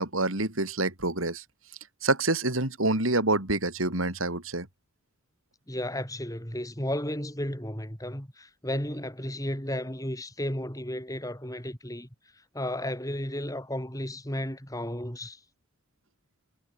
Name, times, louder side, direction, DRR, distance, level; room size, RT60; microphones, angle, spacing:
voice 1, 0.0-1.4 2.0-4.7, right 2 dB, 80° right, 4.7 m, -27 dB
voice 2, 5.7-12.1 12.5-15.4, left 1 dB, 15° left, 6.9 m, -33 dB
head